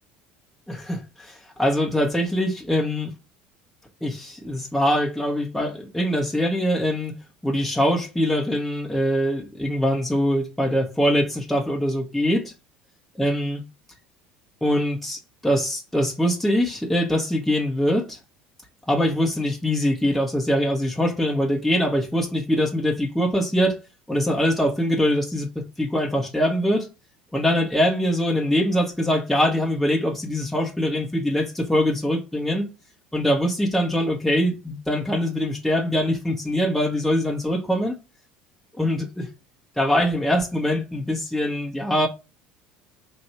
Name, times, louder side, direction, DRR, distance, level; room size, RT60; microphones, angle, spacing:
voice 1, 0.7-3.1 4.0-7.1 7.4-12.5 13.2-13.6 14.6-18.2 18.9-23.8 24.1-26.9 27.3-32.7 33.1-38.0 38.8-39.3 39.8-42.1, equal, 5° left, 0.9 m, -23 dB
3.1 x 2.6 x 2.9 m
hypercardioid pair, 70°, 5 cm